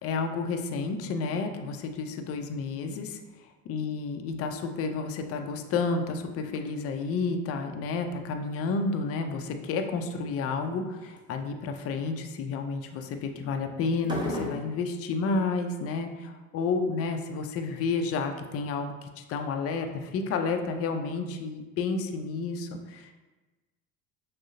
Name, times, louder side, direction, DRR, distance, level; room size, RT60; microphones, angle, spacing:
voice 1, 0.0-3.2 3.7-23.1, left 4 dB, 35° left, 6 dB, 0.4 m, -31 dB
sound 1, 8.5-8.9 9.2-9.8 10.3-10.7 11.2-11.4 14.0-14.8, left 1 dB, 10° right, 1.0 m, -35 dB
6.1 x 2.1 x 2.6 m, 1.2 s
hypercardioid pair, 65°, 45 cm